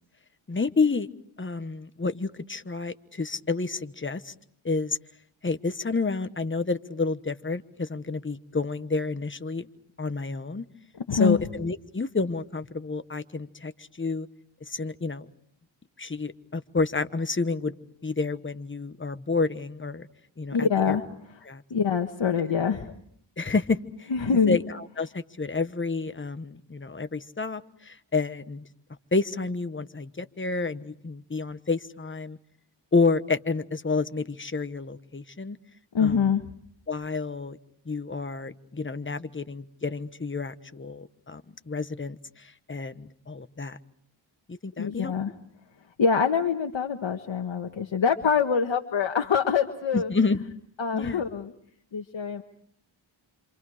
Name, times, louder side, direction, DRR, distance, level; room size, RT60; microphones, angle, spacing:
voice 1, 0.5-1.1 1.4-4.3 4.6-5.0 5.4-9.7 10.0-10.6 11.1-14.3 14.6-15.3 16.0-17.8 18.0-20.1 20.4-21.0 21.4-21.6 23.4-28.6 29.1-32.4 32.9-35.6 36.0-36.3 36.9-37.6 37.9-41.4 41.7-43.8 44.5-45.1 49.9-50.4 50.9-51.2, left 4 dB, 25° left, 11 dB, 1.2 m, -29 dB
voice 2, 20.5-21.0 21.3-21.4 21.7-22.9 24.1-24.6 35.9-36.4 44.8-45.3 46.0-50.1 50.8-51.5 51.9-52.4, left 6 dB, 70° left, 4 dB, 1.5 m, -24 dB
27.5 x 27.0 x 5.0 m, 0.65 s
wide cardioid pair, 70°, 47 cm